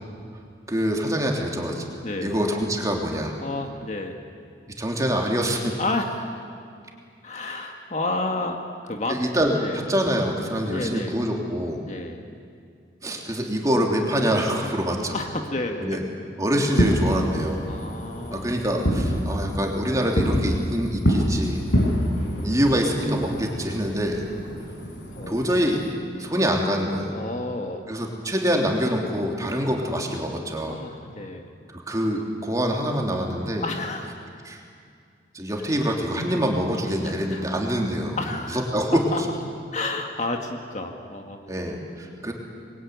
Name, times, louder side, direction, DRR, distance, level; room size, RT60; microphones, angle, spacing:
voice 1, 0.7-1.8 2.2-3.3 4.7-5.8 7.5-7.6 9.1-11.8 13.0-15.2 15.8-16.0 16.4-17.6 18.3-21.6 22.4-24.2 25.3-25.8 26.2-27.1 27.9-30.8 31.7-33.6 34.4-34.6 35.3-38.2 38.5-39.0 41.5-42.3, equal, 20° right, 0 dB, 3.3 m, -25 dB
voice 2, 2.0-2.4 3.4-4.2 5.8-6.4 7.2-8.6 8.8-9.2 9.5-9.8 10.7-11.2 11.8-12.2 15.1-16.0 17.6-18.5 19.1-19.3 21.9-22.6 25.1-25.6 27.1-27.8 30.7-31.5 33.6-34.2 37.0-37.5 38.2-38.7 39.1-39.2 39.7-41.4, left 2 dB, 40° left, 3 dB, 1.8 m, -31 dB
Fireworks, 16.7-25.9, equal, 70° left, 6.9 m, -27 dB
26.0 x 21.5 x 9.5 m, 2.3 s
head